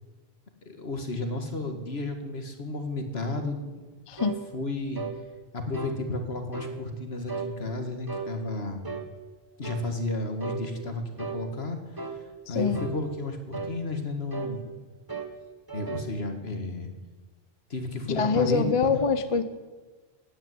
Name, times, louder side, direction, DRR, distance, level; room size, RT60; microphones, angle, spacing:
voice 1, 0.6-3.8 4.5-5.0 5.5-8.9 9.6-14.6 15.7-16.9 17.7-18.7, left 2 dB, 75° left, 6 dB, 2.2 m, -33 dB
voice 2, 4.1-4.4 12.5-12.8 18.1-19.4, left 5 dB, 35° left, 11 dB, 0.8 m, -25 dB
sound 1, 4.2-4.4 4.9-5.2 5.7-6.0 6.5-6.8 7.3-7.5 8.1-8.3 8.8-9.1 9.6-9.9 10.4-10.6 11.2-11.4 12.0-12.2 12.7-13.0 13.5-13.8 14.3-14.6 15.1-15.4 15.7-16.1, right 4 dB, 20° right, 1.2 m, -35 dB
16.5 x 9.4 x 9.4 m, 1.3 s
omnidirectional pair, 1.1 m